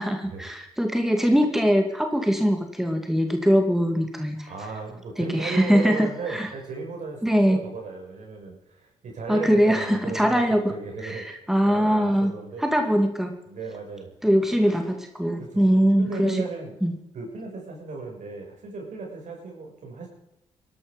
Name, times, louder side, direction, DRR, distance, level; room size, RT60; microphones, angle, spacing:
voice 1, 0.0-4.5 5.2-6.5 7.2-7.6 9.3-10.6 11.0-12.3 12.6-13.4 14.2-16.4 16.8-17.0, equal, 5° right, 5 dB, 2.3 m, -22 dB
voice 2, 4.5-11.3 11.7-12.7 13.5-14.1 15.4-15.6 16.0-16.7 17.1-20.1, right 4 dB, 60° right, 1 dB, 6.5 m, -35 dB
19.0 x 11.5 x 5.3 m, 0.85 s
hypercardioid pair, 50°, 14 cm